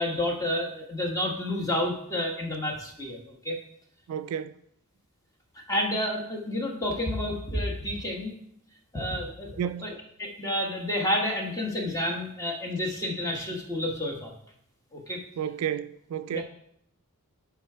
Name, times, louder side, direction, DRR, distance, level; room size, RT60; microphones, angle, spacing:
voice 1, 0.0-3.5 5.7-8.3 8.9-9.9 10.2-14.3 14.9-15.2 16.3-16.4, left 1 dB, 15° left, 1.2 m, -30 dB
voice 2, 4.1-4.6 9.6-9.9 15.4-16.4, right 9 dB, 80° right, 0.3 m, -31 dB
9.7 x 3.5 x 4.4 m
head